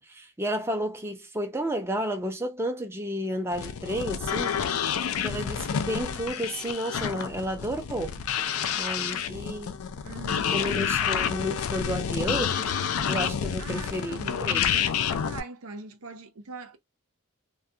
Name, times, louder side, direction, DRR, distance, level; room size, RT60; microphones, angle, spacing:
voice 1, 0.0-4.6 5.2-8.2 8.7-9.8 10.5-14.7, equal, 10° right, 0.5 m, -32 dB
sound 1, 3.5-15.4, left 8 dB, 80° left, 0.4 m, -29 dB
voice 2, 10.0-10.6 13.6-14.8 15.2-16.8, right 3 dB, 85° right, 0.6 m, -42 dB
2.3 x 2.3 x 2.7 m
head